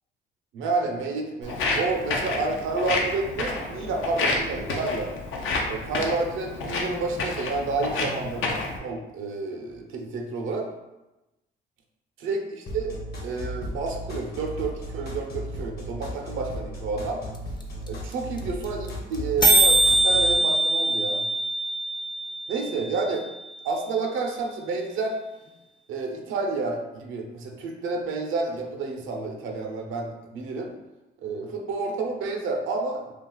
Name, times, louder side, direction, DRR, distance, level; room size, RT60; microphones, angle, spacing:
voice 1, 0.5-5.1 5.7-10.7 12.2-17.2 17.9-21.2 22.5-23.3 23.6-25.2 25.9-30.7 31.2-33.1, right 3 dB, 80° right, 2 dB, 0.6 m, -30 dB
Walk footsteps, 1.4-8.8, left 3 dB, 80° left, 0.6 m, -29 dB
sound 1, 12.7-20.3, equal, 55° left, 1.0 m, -35 dB
sound 2, 17.3-17.4 17.6-17.7 17.9-18.1 18.4-18.5 18.6-18.9 19.1-19.2 19.4-23.4, right 2 dB, 20° left, 0.5 m, -22 dB
2.4 x 2.4 x 3.8 m, 0.99 s
cardioid pair, 90°, 20 cm